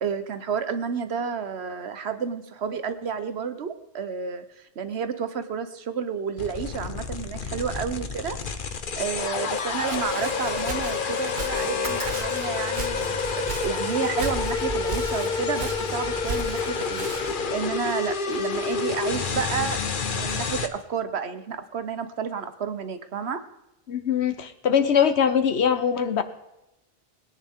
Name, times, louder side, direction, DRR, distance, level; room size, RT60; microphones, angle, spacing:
voice 1, 0.0-8.4 9.0-19.8 20.1-23.4, right 6 dB, 80° right, 10 dB, 1.2 m, -31 dB
sound 1, 6.4-20.7, left 5 dB, 55° left, 1.1 m, -29 dB
Walk footsteps, 9.5-17.5, right 3 dB, 45° right, 1.3 m, -36 dB
sound 2, 11.7-17.3, equal, 20° left, 2.6 m, -41 dB
voice 2, 23.9-26.2, left 7 dB, 85° left, 10 dB, 1.3 m, -22 dB
20.0 x 10.5 x 3.7 m, 0.92 s
omnidirectional pair, 1.1 m